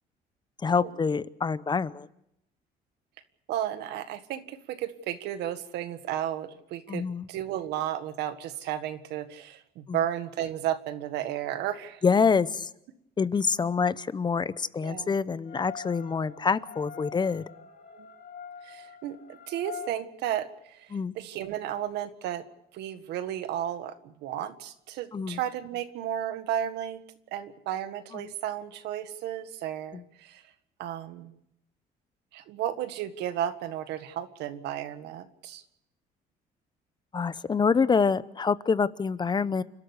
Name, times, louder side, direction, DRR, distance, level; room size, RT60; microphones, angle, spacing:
voice 1, 0.6-2.1 6.9-7.3 9.9-10.0 12.0-12.7 13.2-17.4 20.9-21.1 25.1-25.4 29.9-30.0 37.1-39.6, left 5 dB, 25° left, 16 dB, 0.8 m, -26 dB
voice 2, 3.5-12.0 14.8-15.2 17.9-18.1 18.6-22.4 22.7-27.0 27.3-30.4 30.8-31.3 32.3-35.6, right 11 dB, 85° right, 10 dB, 1.7 m, -33 dB
sound 1, 15.4-19.9, left 7 dB, 55° left, 3.2 m, -44 dB
29.5 x 13.0 x 8.3 m, 0.79 s
cardioid pair, 110°, 17 cm